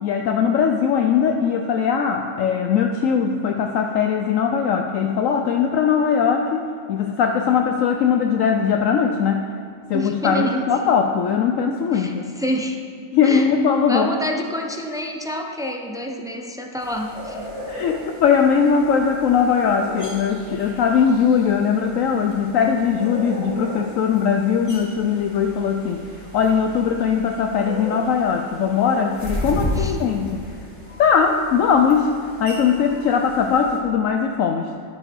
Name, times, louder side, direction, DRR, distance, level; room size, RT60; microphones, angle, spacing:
voice 1, 0.0-6.6 6.9-9.4 9.9-12.3 13.1-14.1 17.7-26.0 26.3-30.4 31.0-32.1 32.4-34.7, left 6 dB, 70° left, 4 dB, 0.9 m, -20 dB
voice 2, 9.9-10.9 11.9-12.8 13.2-13.5 13.9-17.5 29.8-30.1, equal, 5° right, 2 dB, 0.3 m, -28 dB
sound 1, 16.8-33.8, equal, 20° left, 1.9 m, -34 dB
11.5 x 6.9 x 5.3 m, 2.4 s
omnidirectional pair, 1.6 m